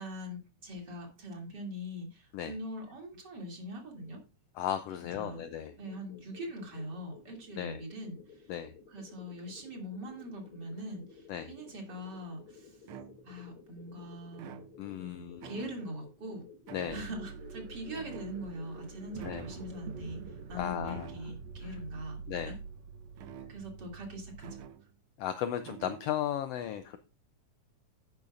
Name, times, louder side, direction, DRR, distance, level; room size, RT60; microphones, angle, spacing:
voice 1, 0.0-4.2 5.0-5.4 5.8-8.5 8.9-12.8 13.2-14.7 15.0-16.5 16.9-22.2 22.5-22.6 23.5-24.6, equal, 35° right, 1 dB, 3.2 m, -42 dB
voice 2, 4.6-5.7 7.6-7.8 8.5-8.7 11.3-11.5 14.8-15.5 16.7-17.0 19.2-19.5 20.5-21.1 22.3-22.5 25.2-27.0, left 10 dB, 75° left, 10 dB, 1.5 m, -35 dB
sound 1, 5.2-21.1, left 5 dB, 50° left, 2.7 m, -55 dB
sound 2, 12.9-13.6 14.3-15.1 15.4-16.1 16.7-17.4 17.9-18.8 19.2-19.7 20.9-21.5 23.2-23.9 24.4-24.9 25.6-26.2, right 8 dB, 85° right, 1.2 m, -49 dB
sound 3, 16.9-24.6, right 6 dB, 65° right, 2.0 m, -45 dB
11.0 x 10.5 x 2.5 m, 0.31 s
omnidirectional pair, 3.3 m